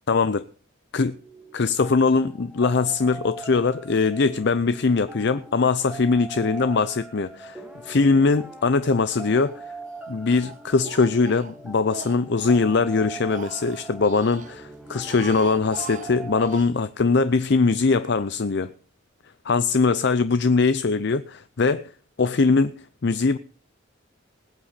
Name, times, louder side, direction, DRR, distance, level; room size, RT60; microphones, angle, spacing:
voice 1, 0.1-0.4 0.9-1.1 1.5-9.6 10.1-18.7 19.4-21.9 22.2-23.4, left 4 dB, 55° left, 0.6 m, -21 dB
sound 1, 1.0-16.6, right 3 dB, 5° right, 2.0 m, -41 dB
Speech, 8.8-9.6 9.9-12.7 13.1-14.5 14.9-16.7, right 6 dB, 40° right, 0.6 m, -42 dB
20.0 x 8.7 x 4.1 m
head